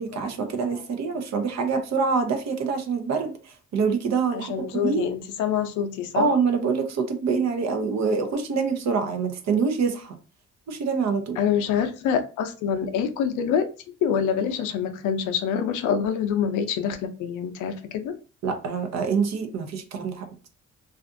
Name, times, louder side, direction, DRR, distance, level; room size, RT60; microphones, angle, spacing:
voice 1, 0.0-5.1 6.2-10.1 10.7-11.4 18.4-20.3, right 5 dB, 60° right, 0.7 m, -25 dB
voice 2, 4.3-6.3 11.4-13.7 14.0-18.1, left 7 dB, 90° left, 0.5 m, -26 dB
2.5 x 2.4 x 2.5 m
cardioid pair, 90°, 30 cm